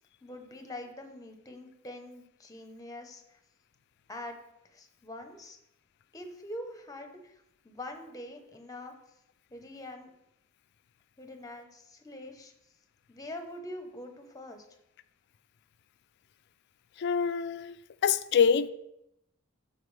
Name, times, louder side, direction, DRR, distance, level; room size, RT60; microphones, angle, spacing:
voice 1, 0.2-3.4 4.1-4.4 4.6-5.6 6.1-8.9 9.5-10.1 11.2-12.5 13.1-14.7, left 1 dB, 15° left, 0.8 m, -44 dB
voice 2, 17.0-17.8 18.0-18.7, left 6 dB, 55° left, 0.4 m, -25 dB
12.5 x 4.4 x 3.3 m
head